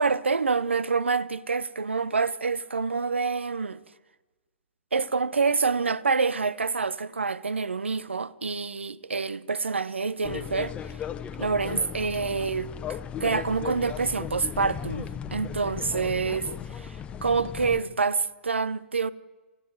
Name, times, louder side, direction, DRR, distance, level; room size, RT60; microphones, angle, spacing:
voice 1, 0.0-3.8 4.9-10.7 11.4-19.1, right 4 dB, 75° right, 1.0 m, -27 dB
sound 1, 10.2-17.8, left 8 dB, 15° left, 1.1 m, -36 dB
27.5 x 15.0 x 9.5 m
figure-of-eight pair, 115°, 6 cm